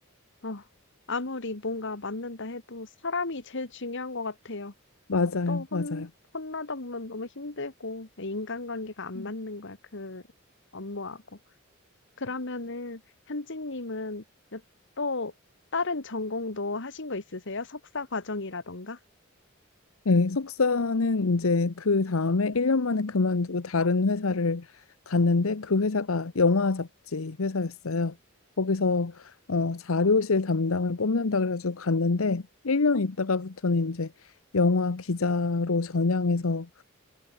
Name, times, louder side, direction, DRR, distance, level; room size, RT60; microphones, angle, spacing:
voice 1, 1.1-4.7 5.5-6.1 6.3-10.2 10.7-11.2 12.2-13.0 13.3-14.2 14.5-14.6 15.0-15.3 15.7-19.0, left 3 dB, 60° left, 1.9 m, -34 dB
voice 2, 5.1-6.1 9.2-9.3 20.0-28.1 28.6-36.8, left 3 dB, 80° left, 0.9 m, -25 dB
head